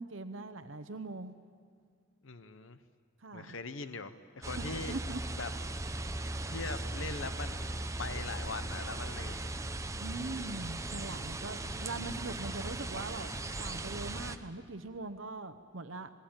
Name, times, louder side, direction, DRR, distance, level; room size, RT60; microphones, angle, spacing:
voice 1, 0.0-1.4 3.2-3.5 4.5-5.2 9.9-13.3 13.6-16.1, right 3 dB, 65° right, 9 dB, 0.9 m, -41 dB
voice 2, 2.2-2.8 3.3-4.9 5.4-5.5 6.5-9.4 10.3-10.4, left 4 dB, 70° left, 11 dB, 0.9 m, -41 dB
sound 1, 4.4-14.4, right 2 dB, 15° right, 0.8 m, -38 dB
27.0 x 20.0 x 8.9 m, 2.1 s
head